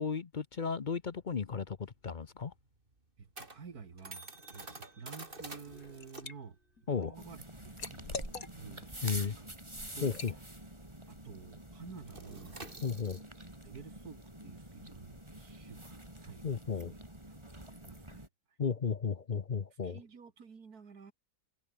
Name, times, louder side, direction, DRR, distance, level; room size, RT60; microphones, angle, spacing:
voice 1, 0.0-1.8 2.0-2.5 6.9-7.2 9.0-9.3 10.0-10.3 12.8-13.2 16.4-16.9 18.6-20.0, left 6 dB, 40° left, 0.8 m, -34 dB
sound 1, 1.8-10.8 11.0-11.3 11.6-17.3, right 2 dB, 35° right, 3.5 m, -51 dB
voice 2, 3.2-6.6 6.9-9.5 9.9-10.2 11.1-12.6 13.4-16.4 16.8-17.0 17.3-18.3 19.8-21.1, right 5 dB, 70° right, 2.7 m, -51 dB
Liquid, 5.5-6.3 6.8-8.9 9.3-9.5 10.1-10.4, left 4 dB, 60° left, 3.0 m, -44 dB
sound 2, 7.1-18.3, right 1 dB, 15° right, 4.9 m, -48 dB
omnidirectional pair, 1.6 m